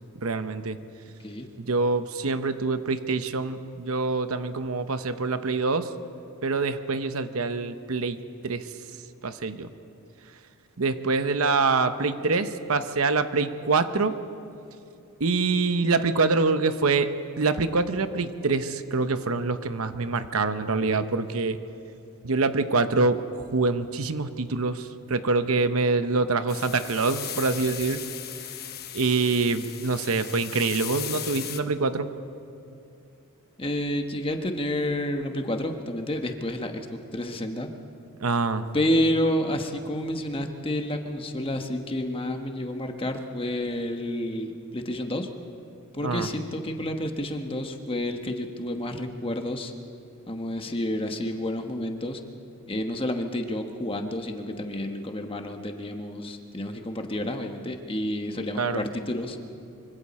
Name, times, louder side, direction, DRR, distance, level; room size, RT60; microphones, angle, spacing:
voice 1, 0.2-0.8 1.6-5.9 6.4-8.7 9.2-9.7 10.8-14.1 15.2-17.1 17.4-21.6 22.2-28.0 28.9-32.1 38.2-38.6 46.0-46.3 58.6-58.8, right 3 dB, 70° right, 10 dB, 0.9 m, -25 dB
sound 1, 26.5-31.6, left 11 dB, 45° left, 1.0 m, -37 dB
voice 2, 33.6-36.8 37.1-37.7 38.7-45.3 45.9-49.7 50.3-52.2 52.7-59.4, left 1 dB, 25° left, 5 dB, 1.2 m, -29 dB
25.0 x 24.5 x 4.3 m, 2.6 s
head